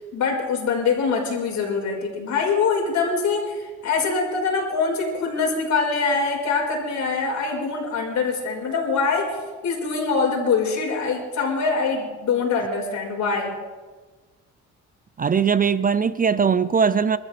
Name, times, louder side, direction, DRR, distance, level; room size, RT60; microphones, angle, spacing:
voice 1, 0.1-9.4 9.6-13.5, left 4 dB, 65° left, 5.2 m, -24 dB
voice 2, 15.2-17.2, right 6 dB, 30° right, 0.5 m, -20 dB
28.0 x 13.5 x 3.5 m
cardioid pair, 90°, 30 cm